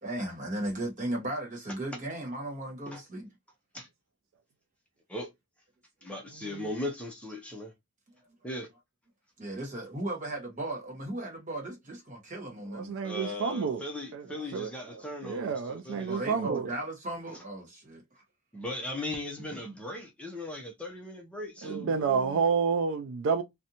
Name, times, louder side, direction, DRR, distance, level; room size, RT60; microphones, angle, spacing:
voice 1, 0.0-3.3 9.4-13.0 14.2-14.5 15.6-15.7 16.1-18.2, right 1 dB, 35° right, 1.2 m, -36 dB
voice 2, 6.0-7.7 8.4-8.7 13.0-16.5 18.5-22.4, left 1 dB, 5° left, 0.5 m, -38 dB
voice 3, 12.7-13.8 14.1-14.3 14.5-16.7 21.6-23.4, right 6 dB, 60° right, 0.3 m, -29 dB
2.6 x 2.2 x 2.7 m
head